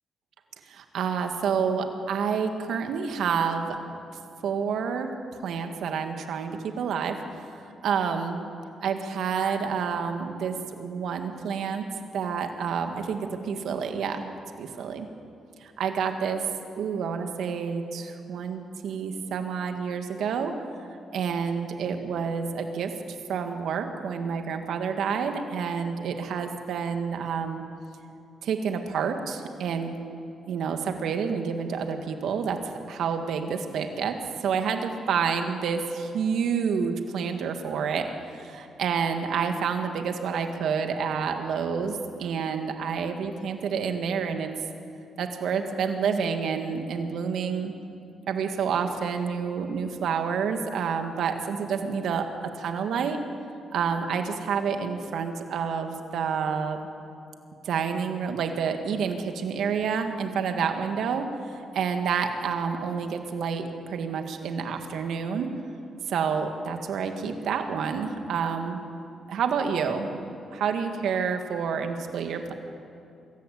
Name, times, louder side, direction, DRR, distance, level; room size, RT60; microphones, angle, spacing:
voice 1, 0.7-3.8 4.4-7.2 7.5-8.4 8.8-11.9 12.1-14.2 14.6-15.1 15.6-16.5 16.8-20.5 21.1-22.9 23.3-27.6 28.4-30.0 30.5-44.5 45.2-47.7 48.3-52.2 52.5-53.2 53.7-56.8 57.7-65.5 66.1-68.8 69.3-72.5, right 6 dB, 75° right, 5 dB, 1.9 m, -29 dB
24.5 x 14.0 x 8.4 m, 2.6 s
cardioid pair, 65°, 0 cm